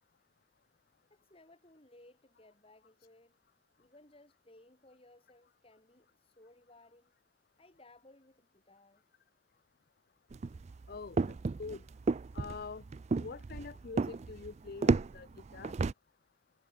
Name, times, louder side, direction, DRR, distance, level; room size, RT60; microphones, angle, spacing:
voice 1, 1.1-3.4 3.8-7.1 7.6-9.0, left 2 dB, 25° left, 2.5 m, -61 dB
sound 1, 10.3-15.9, right 4 dB, 30° right, 0.3 m, -33 dB
voice 2, 10.9-11.9 12.3-12.8 13.2-15.7, left 4 dB, 45° left, 0.5 m, -45 dB
head